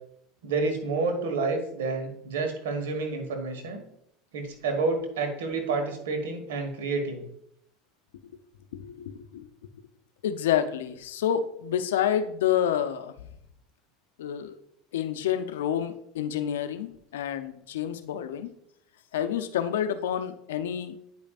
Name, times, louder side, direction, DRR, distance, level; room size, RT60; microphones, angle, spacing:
voice 1, 0.4-3.8 4.3-7.2, right 3 dB, 85° right, 4 dB, 1.6 m, -29 dB
voice 2, 8.7-9.5 10.2-13.1 14.2-14.6 14.9-18.5 19.1-21.0, left 9 dB, 90° left, 9 dB, 0.6 m, -29 dB
9.4 x 5.2 x 2.5 m, 0.73 s
supercardioid pair, 105°, 0 cm